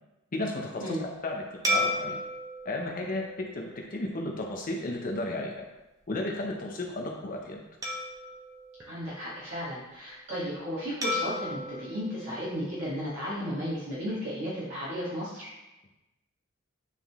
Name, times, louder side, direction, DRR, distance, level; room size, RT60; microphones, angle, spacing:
voice 1, 0.3-2.2 2.6-5.7 6.1-7.6, left 2 dB, 40° left, 0 dB, 0.7 m, -34 dB
sound 1, 1.6-4.3 4.9-5.1 7.8-9.6 11.0-13.3, left 1 dB, 15° right, 1.0 m, -34 dB
voice 2, 8.8-15.5, equal, 60° right, -9 dB, 1.8 m, -34 dB
9.1 x 3.8 x 3.5 m, 1.0 s
head